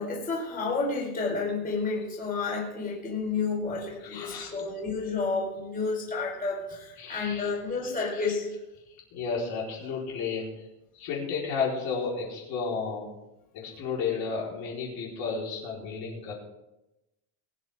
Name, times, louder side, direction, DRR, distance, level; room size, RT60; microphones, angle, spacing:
voice 1, 0.0-8.5, left 4 dB, 20° left, -3 dB, 4.5 m, -30 dB
voice 2, 4.0-4.7 7.0-7.5 7.8-8.3 9.1-10.7 10.9-13.1 13.5-16.3, left 5 dB, 50° left, -4 dB, 4.5 m, -33 dB
22.5 x 9.1 x 3.7 m, 0.95 s
supercardioid pair, 145°, 47 cm